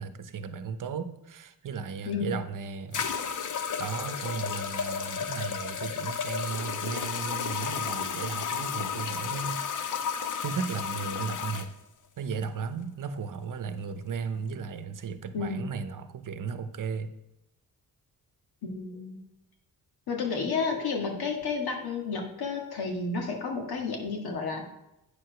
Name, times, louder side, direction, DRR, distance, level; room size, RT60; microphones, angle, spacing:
voice 1, 0.0-3.1 3.5-10.1 10.4-11.7 12.2-17.1, right 5 dB, 60° right, 10 dB, 0.8 m, -35 dB
voice 2, 2.1-2.4 15.3-15.7 18.6-19.2 20.1-24.7, left 4 dB, 90° left, 1 dB, 1.8 m, -31 dB
sound 1, 2.1-2.2 2.9-11.7, left 7 dB, 55° left, 0.7 m, -33 dB
8.7 x 4.8 x 5.8 m, 0.90 s
cardioid pair, 110°, 36 cm